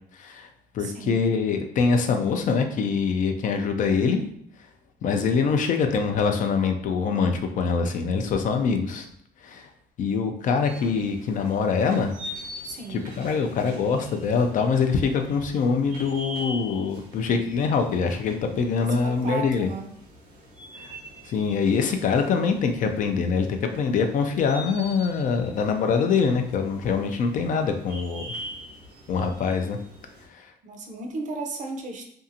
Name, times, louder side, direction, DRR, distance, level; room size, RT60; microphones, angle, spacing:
voice 1, 0.1-0.5 0.7-4.2 5.0-9.1 9.4-9.7 10.0-12.1 12.9-19.7 20.7-21.0 21.2-28.3 29.1-29.8 30.3-30.5, left 5 dB, 50° left, 5 dB, 0.4 m, -24 dB
voice 2, 0.8-1.3 12.6-13.1 18.8-19.9 30.6-32.1, right 4 dB, 50° right, 4 dB, 0.5 m, -35 dB
sound 1, 10.6-30.3, equal, 90° right, 0.9 m, -43 dB
2.6 x 2.4 x 2.6 m, 0.68 s
cardioid pair, 110°, 17 cm